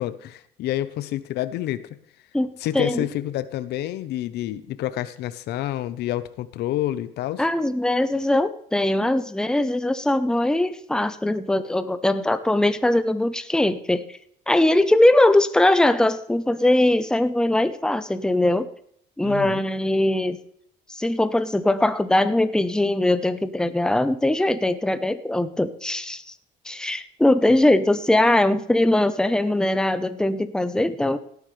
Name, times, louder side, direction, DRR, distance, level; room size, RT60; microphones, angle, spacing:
voice 1, 0.0-1.9 2.6-7.4 19.2-19.6, left 13 dB, 80° left, 14 dB, 0.8 m, -28 dB
voice 2, 2.3-3.1 7.4-14.2 14.5-18.7 19.2-20.4 20.9-26.3 26.6-31.2, left 1 dB, 5° left, 11 dB, 0.8 m, -21 dB
17.5 x 9.5 x 3.3 m, 0.67 s
cardioid pair, 110°, 17 cm